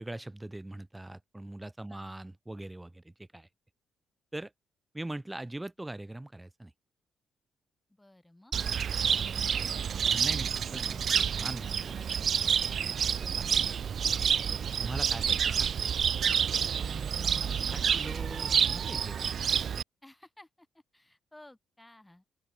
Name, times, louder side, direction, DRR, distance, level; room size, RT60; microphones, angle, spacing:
voice 1, 0.0-3.5 4.3-4.5 4.9-6.7 9.0-13.7 14.5-16.1 16.7-19.2, right 1 dB, 10° right, 3.0 m, -43 dB
voice 2, 7.9-8.5 20.0-22.2, left 1 dB, 10° left, 2.7 m, -56 dB
Cricket, 8.5-19.8, right 7 dB, 55° right, 0.5 m, -29 dB
open air
cardioid pair, 90°, 0 cm